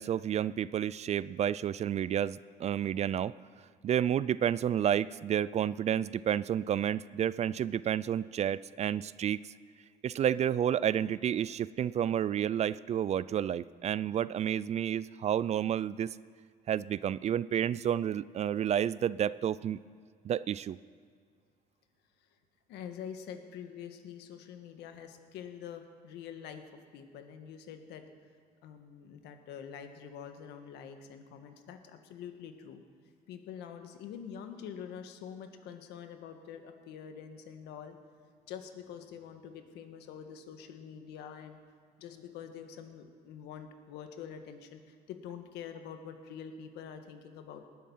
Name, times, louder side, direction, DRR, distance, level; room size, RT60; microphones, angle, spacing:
voice 1, 0.0-3.3 3.8-9.4 10.0-16.2 16.7-19.8 20.2-20.8, right 9 dB, 40° right, 19 dB, 0.4 m, -30 dB
voice 2, 22.7-28.0 28.6-32.8 33.3-38.0 38.5-41.6 42.0-47.7, left 8 dB, 85° left, 7 dB, 1.5 m, -46 dB
19.0 x 11.0 x 5.6 m, 2.1 s
cardioid pair, 110°, 17 cm